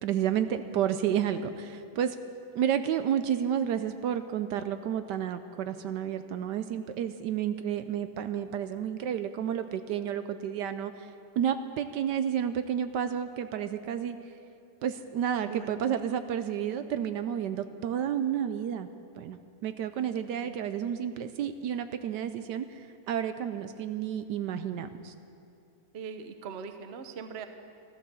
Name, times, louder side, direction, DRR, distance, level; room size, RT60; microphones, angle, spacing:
voice 1, 0.0-2.2 2.5-14.2 14.8-18.9 19.1-25.1, right 9 dB, 75° right, 10 dB, 1.1 m, -31 dB
voice 2, 15.4-15.8 16.1-16.2 20.4-20.6 25.9-27.5, right 6 dB, 50° right, 8 dB, 0.8 m, -41 dB
14.5 x 12.5 x 7.0 m, 2.7 s
omnidirectional pair, 2.0 m